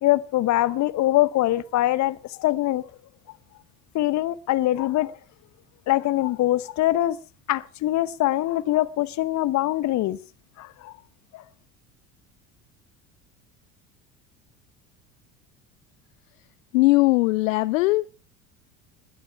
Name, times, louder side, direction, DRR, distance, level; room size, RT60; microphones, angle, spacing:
voice 1, 0.0-2.9 3.9-5.1 5.9-7.2 7.5-10.2 10.6-10.9 11.3-11.4, left 15 dB, 40° left, 0.9 m, -23 dB
voice 2, 16.7-18.1, left 21 dB, 60° left, 0.6 m, -20 dB
20.5 x 13.0 x 3.3 m
figure-of-eight pair, 65°, 46 cm